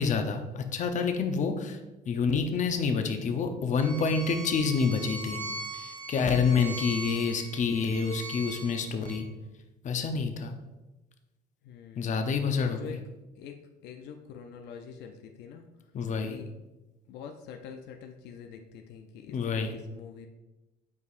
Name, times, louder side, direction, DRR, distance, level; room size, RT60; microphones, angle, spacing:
voice 1, 0.0-1.8 2.1-5.4 5.7-9.3 9.8-10.5 12.0-12.8 15.9-16.4 19.3-19.7, left 5 dB, 45° left, 6 dB, 0.8 m, -28 dB
Bowed string instrument, 3.8-9.2, right 2 dB, 85° right, 1.1 m, -40 dB
voice 2, 11.6-12.2 12.6-13.0 13.4-13.6 13.8-15.6 16.3-16.5 17.1-20.3, left 7 dB, 80° left, 5 dB, 0.5 m, -45 dB
8.3 x 4.7 x 2.5 m, 1.0 s
cardioid pair, 110°, 17 cm